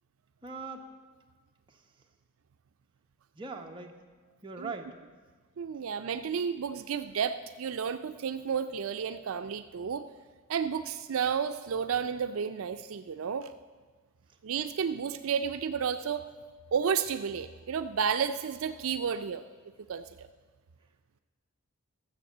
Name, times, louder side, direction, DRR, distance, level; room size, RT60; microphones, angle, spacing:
voice 1, 0.4-0.8 1.7-1.8 3.4-3.9 4.4-4.9, right 4 dB, 25° right, 2 dB, 1.0 m, -40 dB
voice 2, 5.6-10.0 10.5-13.5 14.4-16.3 16.7-19.4 19.9-20.3, right 7 dB, 70° right, 9 dB, 0.4 m, -32 dB
13.5 x 7.2 x 7.2 m, 1.4 s
head